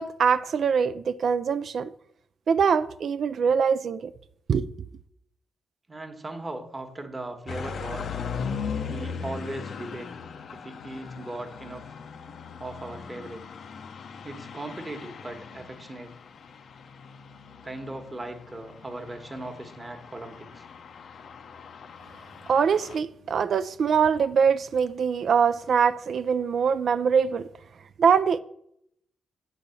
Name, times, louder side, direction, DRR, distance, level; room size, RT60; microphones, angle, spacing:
voice 1, 0.0-1.9 2.5-4.1 4.5-4.7 22.5-27.5 28.0-28.4, right 6 dB, 60° right, 0.3 m, -23 dB
voice 2, 5.9-8.1 8.9-10.1 10.5-11.8 12.6-13.5 14.2-16.2 17.6-20.7, right 2 dB, 20° right, 1.2 m, -38 dB
sound 1, 7.5-23.0, left 6 dB, 60° left, 0.6 m, -39 dB
8.7 x 4.1 x 6.9 m
cardioid pair, 115°, 0 cm